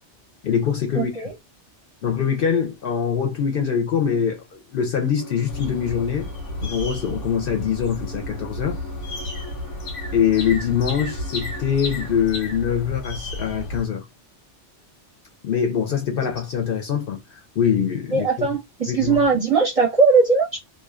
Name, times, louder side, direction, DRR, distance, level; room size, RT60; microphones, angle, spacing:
voice 1, 0.4-1.1 2.0-6.3 6.6-8.8 10.1-14.1 15.4-18.5 18.9-19.2, left 8 dB, 60° left, 0.7 m, -23 dB
voice 2, 0.9-1.3 18.1-20.6, right 4 dB, 40° right, 0.7 m, -19 dB
sound 1, 5.2-12.2, left 1 dB, 20° left, 0.6 m, -42 dB
sound 2, 5.5-13.9, left 1 dB, 85° left, 1.1 m, -32 dB
2.5 x 2.3 x 2.2 m
omnidirectional pair, 1.2 m